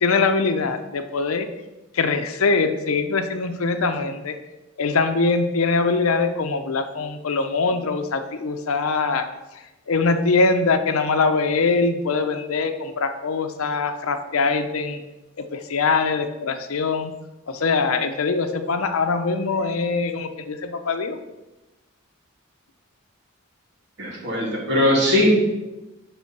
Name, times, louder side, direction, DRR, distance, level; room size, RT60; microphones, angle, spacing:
voice 1, 0.0-1.5 1.9-4.3 4.8-9.3 9.9-15.0 15.5-17.1 17.5-21.2, left 4 dB, 85° left, 8 dB, 0.6 m, -22 dB
voice 2, 24.0-25.3, left 1 dB, 55° right, -3 dB, 2.0 m, -20 dB
7.2 x 3.4 x 5.9 m, 1.0 s
head